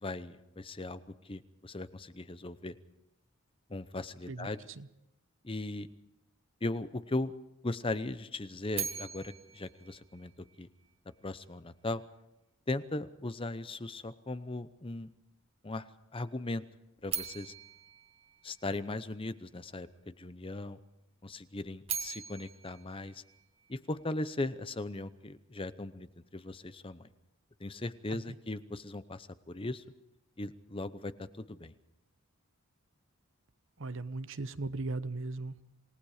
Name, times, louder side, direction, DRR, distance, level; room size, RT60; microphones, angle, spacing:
voice 1, 0.0-2.8 3.7-4.6 5.4-5.9 6.6-7.3 7.6-10.3 10.6-10.7 11.2-12.0 12.7-15.1 15.6-16.6 17.0-17.5 18.4-20.8 21.2-23.2 23.7-27.1 27.6-29.8 30.4-31.7, left 2 dB, 25° left, 13 dB, 0.7 m, -38 dB
voice 2, 4.3-4.9 28.1-28.4 33.8-35.6, right 3 dB, 60° right, 13 dB, 0.9 m, -38 dB
sound 1, 8.7-10.9 17.0-19.2 21.6-24.0, right 7 dB, 30° right, 1.7 m, -41 dB
28.0 x 18.5 x 5.0 m, 0.87 s
head